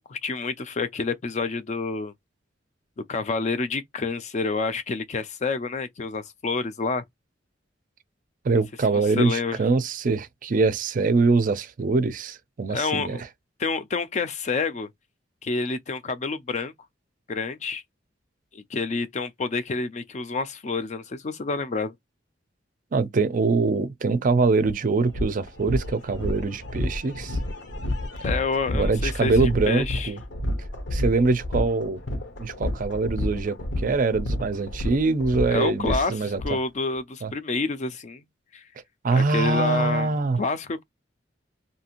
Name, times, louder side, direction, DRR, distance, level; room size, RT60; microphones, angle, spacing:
voice 1, 0.0-2.1 3.1-7.0 8.9-9.6 12.7-13.2 13.6-14.9 15.4-16.7 17.3-17.8 18.5-21.9 28.2-30.1 35.5-38.2 38.5-38.6 39.1-40.8, left 4 dB, 40° left, 0.4 m, -28 dB
voice 2, 8.4-13.2 22.9-27.4 28.7-30.2 30.9-32.0 32.4-36.6 37.2-37.3 39.0-40.4, right 3 dB, 45° right, 0.4 m, -23 dB
sound 1, 24.6-24.7 25.1-36.5, left 1 dB, 75° left, 0.9 m, -30 dB
2.7 x 2.5 x 2.9 m
head